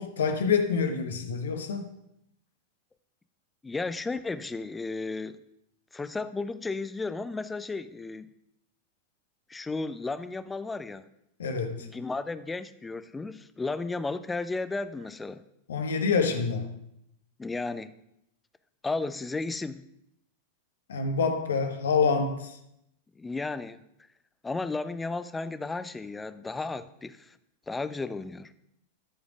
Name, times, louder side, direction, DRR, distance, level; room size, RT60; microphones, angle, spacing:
voice 1, 0.0-1.9 11.4-11.9 15.7-16.7 20.9-22.6, left 5 dB, 65° left, 1.1 m, -27 dB
voice 2, 3.6-5.4 5.9-8.3 9.5-11.1 11.8-15.4 17.4-18.0 18.8-19.8 23.2-23.8 24.4-27.4 27.7-28.5, left 3 dB, 10° left, 0.5 m, -34 dB
13.5 x 5.2 x 5.0 m
figure-of-eight pair, 90°, 0 cm